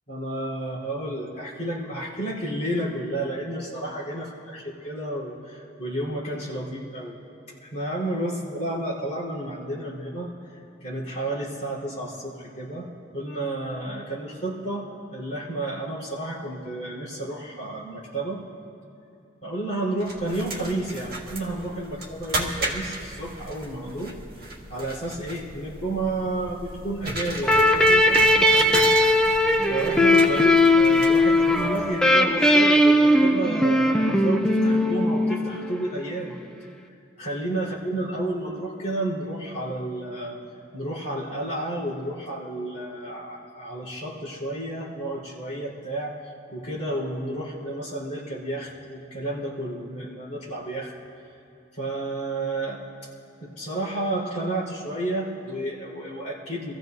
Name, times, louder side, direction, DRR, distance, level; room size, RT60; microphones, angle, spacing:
voice 1, 0.1-7.2 7.7-18.4 19.4-24.2 24.7-28.9 29.6-36.3 37.2-40.4 40.7-46.2 46.5-50.9 51.7-52.8 53.4-56.7, right 1 dB, 35° left, -7 dB, 4.3 m, -31 dB
sound 1, 20.0-32.1, right 2 dB, 50° right, 2.2 m, -35 dB
sound 2, 27.4-35.9, left 1 dB, 5° left, 0.5 m, -19 dB
27.5 x 15.0 x 2.7 m, 2.8 s
head